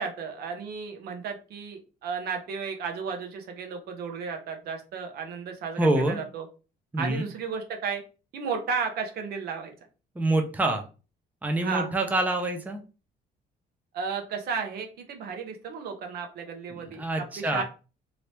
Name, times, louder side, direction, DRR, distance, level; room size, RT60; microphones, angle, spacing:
voice 1, 0.0-6.5 7.0-8.0 8.3-9.7 11.6-11.9 13.9-17.6, right 5 dB, 70° right, 4 dB, 0.9 m, -33 dB
voice 2, 5.8-6.2 6.9-7.3 10.2-10.8 11.4-12.8 16.7-17.6, right 2 dB, 10° right, 4 dB, 0.6 m, -26 dB
2.9 x 2.8 x 3.2 m, 0.34 s
cardioid pair, 110°, 17 cm